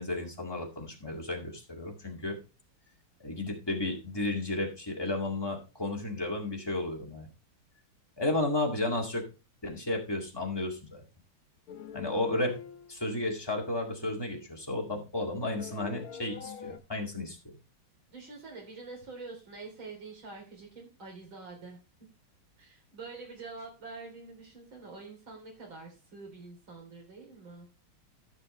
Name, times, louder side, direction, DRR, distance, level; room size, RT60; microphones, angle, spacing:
voice 1, 0.0-2.4 3.2-7.3 8.2-9.2 9.6-11.0 11.9-12.5 12.9-17.4, left 2 dB, 10° left, 0 dB, 2.0 m, -33 dB
sound 1, 11.7-13.0 15.6-16.8, left 7 dB, 80° left, 2.0 m, -43 dB
voice 2, 18.1-21.8 22.6-27.7, right 3 dB, 70° right, 1 dB, 4.3 m, -46 dB
14.0 x 6.2 x 3.2 m, 0.30 s
omnidirectional pair, 2.3 m